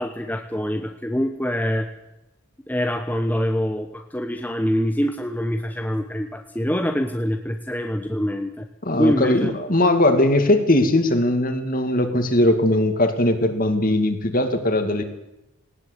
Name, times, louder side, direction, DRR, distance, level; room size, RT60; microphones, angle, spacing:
voice 1, 0.0-1.9 2.7-8.7 9.0-9.5, equal, 10° left, 4 dB, 1.1 m, -25 dB
voice 2, 8.8-15.0, left 1 dB, 40° left, 7 dB, 2.5 m, -19 dB
19.0 x 18.5 x 8.3 m, 0.91 s
head